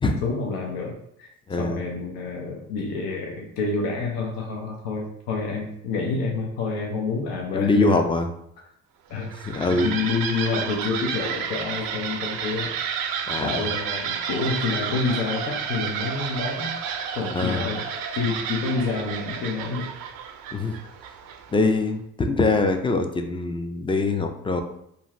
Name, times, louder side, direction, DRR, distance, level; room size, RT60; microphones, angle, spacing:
voice 1, 0.2-1.3 1.6-8.0 9.1-9.3 9.8-12.7 13.4-16.7 17.2-17.8 18.2-19.9, left 4 dB, 80° left, 0 dB, 0.6 m, -28 dB
voice 2, 1.5-1.8 7.5-8.3 9.4-9.9 13.3-13.6 17.3-17.7 20.5-20.8 21.5-24.6, left 3 dB, 15° left, 6 dB, 0.3 m, -23 dB
sound 1, 9.1-21.7, right 7 dB, 65° right, 0.5 m, -31 dB
2.6 x 2.4 x 3.0 m, 0.74 s
supercardioid pair, 60°, 38 cm